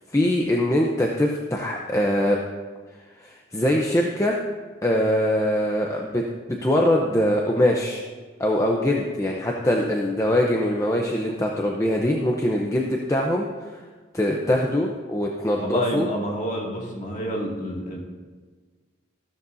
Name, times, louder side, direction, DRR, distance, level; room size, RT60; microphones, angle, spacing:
voice 1, 0.1-2.4 3.2-4.4 4.8-8.0 8.4-13.9 14.1-16.1, left 1 dB, 15° left, -1 dB, 0.7 m, -23 dB
voice 2, 15.6-18.0, equal, 40° left, -2 dB, 2.3 m, -28 dB
14.5 x 12.5 x 2.7 m, 1.4 s
head